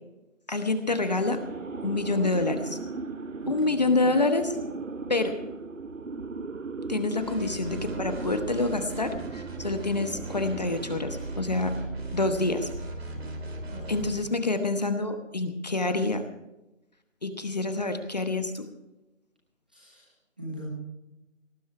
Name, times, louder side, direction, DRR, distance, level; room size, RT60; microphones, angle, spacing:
voice 1, 0.5-1.4 1.8-2.8 3.5-4.6 5.1-5.4 6.9-11.8 12.1-12.7 13.9-16.2 17.2-18.7, left 2 dB, 35° left, 8 dB, 1.0 m, -27 dB
sound 1, 0.9-12.0, right 3 dB, 80° right, 1.4 m, -38 dB
voice 2, 3.4-4.0 13.7-14.2 19.7-20.7, right 1 dB, 5° right, -5 dB, 1.0 m, -43 dB
sound 2, 7.2-14.2, right 2 dB, 50° right, 3.4 m, -38 dB
18.5 x 11.5 x 4.7 m, 0.97 s
figure-of-eight pair, 170°, 38 cm